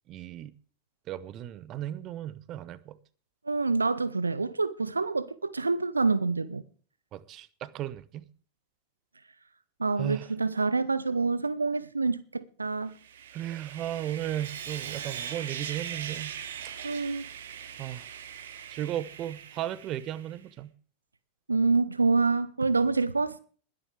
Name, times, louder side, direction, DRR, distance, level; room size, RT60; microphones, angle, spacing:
voice 1, 0.1-0.5 1.1-3.0 7.1-8.3 10.0-10.3 13.3-16.3 17.8-18.1 18.7-20.7, right 12 dB, 35° right, 0.9 m, -35 dB
voice 2, 3.5-6.6 9.8-12.9 16.8-17.2 21.5-23.4, right 3 dB, 80° right, 0.6 m, -27 dB
Sawing, 12.9-20.4, right 8 dB, 60° right, 1.4 m, -40 dB
21.0 x 10.5 x 3.4 m
figure-of-eight pair, 90°, 0 cm